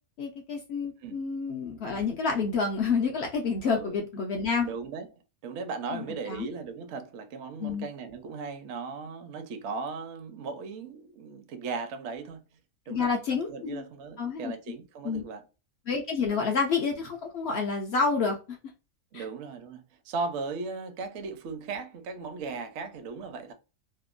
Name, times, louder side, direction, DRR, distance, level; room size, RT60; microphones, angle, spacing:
voice 1, 0.2-4.7 5.9-6.5 7.6-7.9 12.9-13.8 14.2-14.5 15.0-15.2 15.9-18.4 19.1-19.2, left 5 dB, 70° left, 0.6 m, -29 dB
voice 2, 3.6-4.0 4.6-12.4 12.9-13.1 13.4-15.4 16.2-16.4 19.1-23.5, right 4 dB, 65° right, 0.7 m, -37 dB
2.8 x 2.1 x 2.3 m
omnidirectional pair, 1.6 m